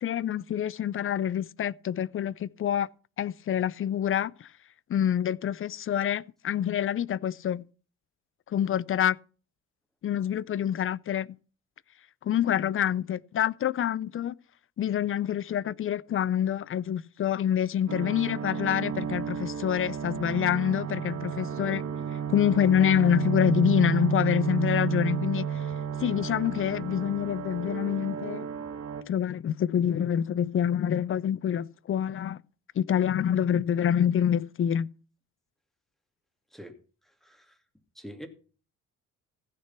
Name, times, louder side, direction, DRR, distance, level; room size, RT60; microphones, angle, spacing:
voice 1, 0.0-2.9 3.2-4.5 4.9-7.6 8.5-9.2 10.0-11.3 12.2-14.4 14.8-21.8 22.3-25.7 26.0-28.5 29.1-32.4 32.8-34.9, left 9 dB, 45° left, 0.5 m, -26 dB
sound 1, 17.9-29.0, right 8 dB, 55° right, 1.5 m, -32 dB
voice 2, 37.0-37.6 37.9-38.3, equal, ahead, 2.7 m, -45 dB
15.5 x 6.8 x 5.8 m
cardioid pair, 90°, 30 cm